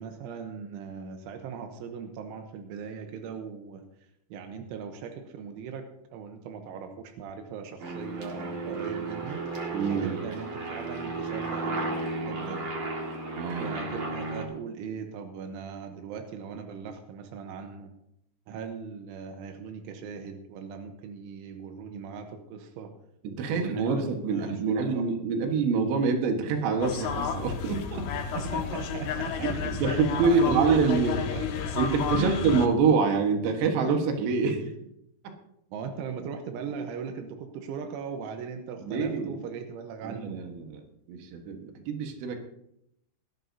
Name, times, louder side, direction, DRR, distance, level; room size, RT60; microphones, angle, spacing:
voice 1, 0.0-3.8 4.3-9.4 9.9-12.7 13.6-17.9 18.5-22.9 23.4-25.0 28.3-29.5 29.9-31.7 32.1-32.4 35.7-40.4, right 6 dB, 90° right, 5 dB, 3.5 m, -38 dB
Aircraft, 7.8-14.4, right 3 dB, 45° right, 1.8 m, -34 dB
voice 2, 9.7-10.1 13.4-13.7 23.2-28.2 29.4-31.2 31.8-34.7 38.8-39.4 40.0-40.8 41.1-42.4, right 5 dB, 70° right, 4 dB, 3.6 m, -26 dB
sound 1, 26.8-32.7, left 7 dB, 70° left, 2.7 m, -32 dB
19.5 x 13.0 x 2.8 m, 0.78 s
omnidirectional pair, 5.4 m